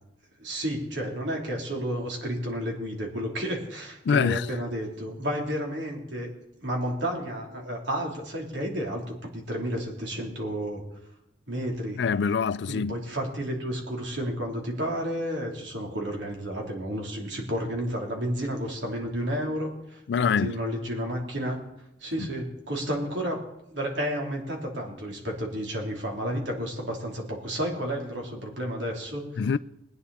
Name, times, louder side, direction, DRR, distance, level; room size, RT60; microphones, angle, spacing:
voice 1, 0.4-6.3 6.6-10.8 11.5-12.0 12.7-21.6 22.0-23.4 23.7-29.4, equal, 85° right, 3.4 m, -31 dB
voice 2, 4.0-4.5 12.0-13.0 20.1-20.6 22.2-22.3 29.4-29.6, left 6 dB, 65° left, 0.4 m, -24 dB
21.0 x 9.8 x 4.2 m
head